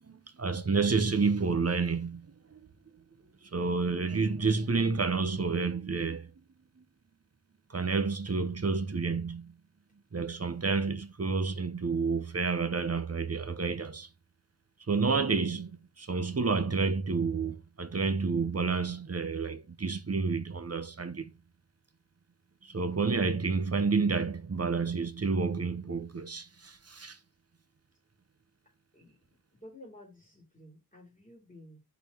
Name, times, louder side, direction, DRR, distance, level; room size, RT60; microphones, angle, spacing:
voice 1, 0.1-2.2 3.5-6.3 7.7-9.4 10.1-14.1 14.9-21.3 22.7-27.2, right 4 dB, 40° right, 0.8 m, -29 dB
voice 2, 29.5-31.8, left 1 dB, 20° left, 2.9 m, -52 dB
4.5 x 4.2 x 5.4 m
wide cardioid pair, 75°, 39 cm